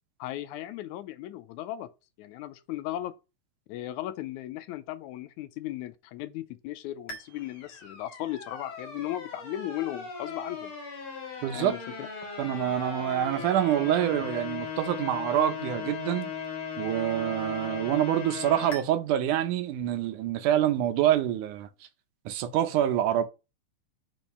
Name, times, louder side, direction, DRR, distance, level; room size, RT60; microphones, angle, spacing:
voice 1, 0.2-1.9 2.2-3.2 3.7-10.7 11.5-12.1, left 14 dB, 85° left, 2.0 m, -36 dB
sound 1, 7.1-18.8, left 5 dB, 50° left, 2.4 m, -38 dB
voice 2, 11.4-11.8 12.4-16.3 16.8-21.7 22.3-23.2, right 11 dB, 85° right, 2.3 m, -26 dB
5.4 x 4.5 x 5.4 m
omnidirectional pair, 3.5 m